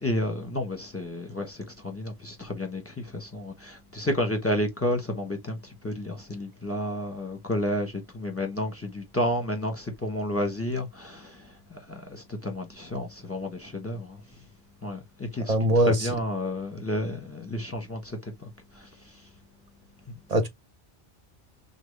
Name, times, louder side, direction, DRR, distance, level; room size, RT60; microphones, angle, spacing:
voice 1, 0.0-5.6 5.8-11.4 11.7-14.2 14.8-15.5 15.9-18.2, left 1 dB, 10° left, 1.3 m, -31 dB
voice 2, 15.5-16.1 20.3-20.5, right 1 dB, 35° right, 1.0 m, -21 dB
6.1 x 2.2 x 3.4 m
omnidirectional pair, 1.2 m